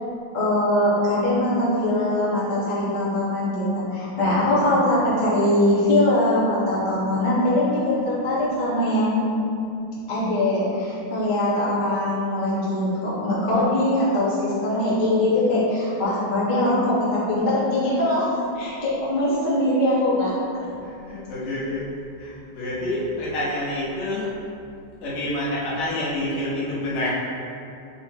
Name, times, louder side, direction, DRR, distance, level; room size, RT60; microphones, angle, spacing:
voice 1, 0.3-9.3 10.1-20.6, left 1 dB, 55° left, -9 dB, 0.5 m, -22 dB
voice 2, 20.8-21.9 22.2-24.3 25.0-27.1, left 1 dB, 80° left, -9 dB, 3.0 m, -28 dB
7.9 x 4.1 x 3.0 m, 2.7 s
omnidirectional pair, 3.6 m